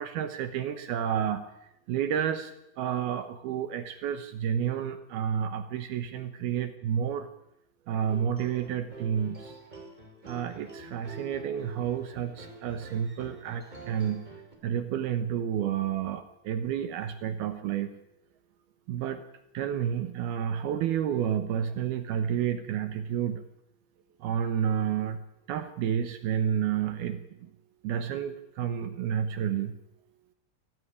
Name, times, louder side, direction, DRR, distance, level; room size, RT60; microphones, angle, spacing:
voice 1, 0.0-1.4 1.9-2.5 2.8-7.3 7.9-9.5 10.2-14.2 14.6-17.9 18.9-19.2 19.5-23.4 24.2-25.2 25.5-27.5 27.8-29.7, right 9 dB, 75° right, 10 dB, 2.4 m, -30 dB
sound 1, 8.1-14.5, right 2 dB, 10° right, 2.6 m, -47 dB
20.5 x 14.5 x 9.9 m, 0.80 s
omnidirectional pair, 5.7 m